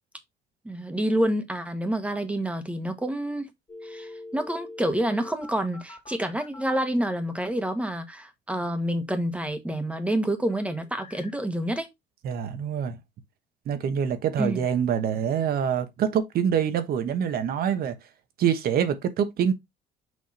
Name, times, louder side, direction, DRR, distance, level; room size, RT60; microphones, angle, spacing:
voice 1, 0.6-3.5 3.8-11.9 14.4-14.6, right 1 dB, 5° right, 1.4 m, -28 dB
sound 1, 3.7-6.8 10.5-11.3, left 2 dB, 25° left, 2.6 m, -43 dB
voice 2, 12.2-13.0 13.7-18.0 18.4-19.5, right 8 dB, 65° right, 1.2 m, -25 dB
6.3 x 3.6 x 4.3 m
cardioid pair, 110°, 17 cm